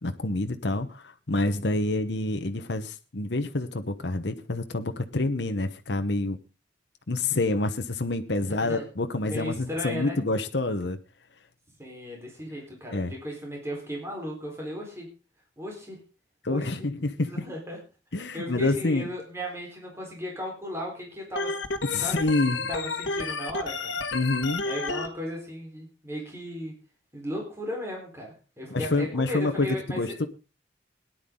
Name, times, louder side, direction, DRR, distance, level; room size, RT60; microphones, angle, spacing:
voice 1, 0.0-6.4 7.1-11.0 12.9-13.2 16.4-17.5 18.1-19.1 21.8-22.7 24.1-24.6 28.7-30.3, left 2 dB, 70° left, 7 dB, 1.1 m, -27 dB
voice 2, 8.4-8.8 9.2-10.2 11.8-15.1 15.6-16.0 16.5-16.8 17.2-17.8 18.2-21.6 22.0-22.3 22.7-24.0 24.6-26.8 27.1-30.1, equal, 15° right, 0 dB, 4.3 m, -36 dB
Organ, 21.4-25.1, left 3 dB, 85° left, 1.5 m, -31 dB
18.0 x 10.5 x 3.8 m, 0.31 s
head